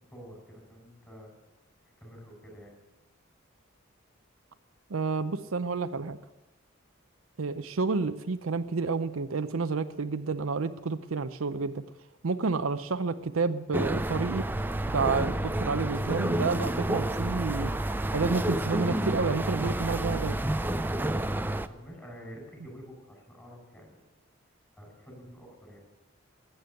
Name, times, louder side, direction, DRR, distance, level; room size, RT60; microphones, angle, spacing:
voice 1, 0.1-1.3 2.0-2.8 21.7-24.0 24.8-25.8, equal, 10° left, 0 dB, 4.9 m, -48 dB
voice 2, 4.9-6.2 7.4-11.8 12.2-14.4 14.9-17.7 18.1-20.4, right 4 dB, 80° right, 11 dB, 0.7 m, -30 dB
sound 1, 13.7-21.7, right 1 dB, 10° right, 0.4 m, -29 dB
14.5 x 8.0 x 9.5 m, 1.1 s
head